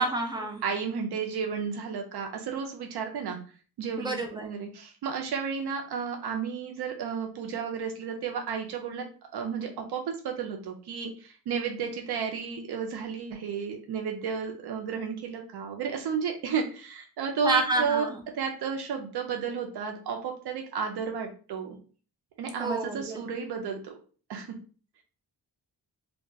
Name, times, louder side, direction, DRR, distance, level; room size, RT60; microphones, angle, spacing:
voice 1, 0.0-0.6 4.0-4.5 17.4-18.2 22.6-23.2, right 2 dB, 10° right, 3 dB, 0.4 m, -28 dB
voice 2, 0.6-3.4 3.8-9.1 9.3-18.1 18.3-21.8 22.4-23.9 24.3-24.5, right 6 dB, 75° right, 3 dB, 0.6 m, -32 dB
2.3 x 2.3 x 3.8 m, 0.39 s
wide cardioid pair, 160°, 40 cm